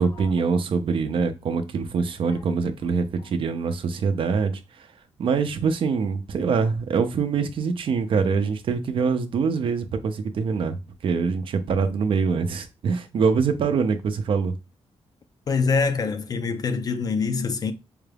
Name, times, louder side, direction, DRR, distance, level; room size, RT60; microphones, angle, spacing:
voice 1, 0.0-4.9 5.2-10.8 11.0-14.6, right 5 dB, 55° right, 0.5 m, -24 dB
voice 2, 15.5-17.7, left 4 dB, 35° left, 0.4 m, -25 dB
4.8 x 2.3 x 3.3 m
wide cardioid pair, 175°, 11 cm